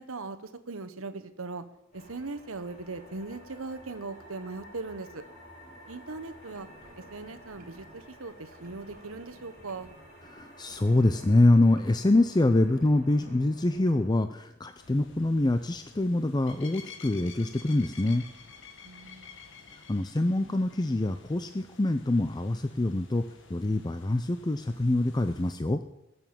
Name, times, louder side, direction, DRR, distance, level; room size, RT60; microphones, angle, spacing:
voice 1, 0.0-1.6 1.9-5.2 5.9-6.7 7.1-9.9 18.8-19.3, right 3 dB, 75° right, 11 dB, 1.1 m, -39 dB
sound 1, 1.9-14.1, equal, 35° left, 5.7 m, -52 dB
sound 2, 6.4-8.3 8.5-10.3 10.6-12.4 12.7-14.4, right 1 dB, 40° right, 1.9 m, -56 dB
voice 2, 10.3-18.2 19.9-23.2 23.5-25.8, left 2 dB, 20° left, 9 dB, 0.5 m, -25 dB
sound 3, 14.7-25.5, left 5 dB, 60° left, 1.7 m, -51 dB
20.5 x 7.0 x 7.3 m, 0.90 s
head